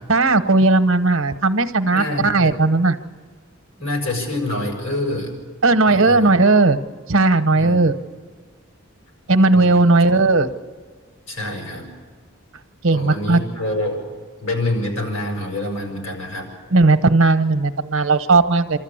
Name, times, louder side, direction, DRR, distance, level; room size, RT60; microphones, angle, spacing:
voice 1, 0.1-2.9 5.6-6.8 7.1-7.9 9.3-10.5 12.8-13.4 16.7-18.8, right 3 dB, 80° right, 9 dB, 1.0 m, -16 dB
voice 2, 1.9-2.6 3.8-5.3 5.9-6.3 7.5-7.8 9.5-9.9 11.3-11.9 12.8-14.0 14.4-16.5, left 1 dB, 85° left, 2 dB, 6.4 m, -26 dB
28.0 x 13.5 x 8.8 m, 1.5 s
head